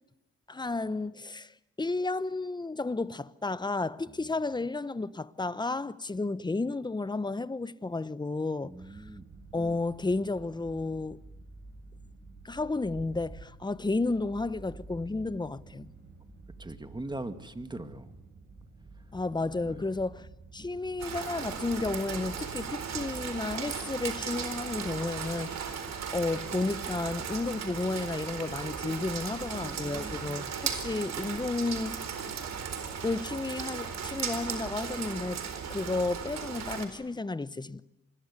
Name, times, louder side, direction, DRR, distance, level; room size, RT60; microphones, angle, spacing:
voice 1, 0.5-9.0 9.5-11.2 12.4-15.9 19.1-20.3 20.5-25.8 26.1-32.0 33.0-35.4 35.7-37.8, left 3 dB, 15° left, 0.9 m, -32 dB
voice 2, 8.6-9.3 16.6-18.1 19.6-19.8 29.4-30.2, right 2 dB, 15° right, 2.1 m, -41 dB
sound 1, 8.7-23.6, right 3 dB, 35° right, 7.4 m, -50 dB
Rain, 21.0-36.8, right 7 dB, 60° right, 4.2 m, -36 dB
26.5 x 21.0 x 9.8 m
cardioid pair, 90°, 30 cm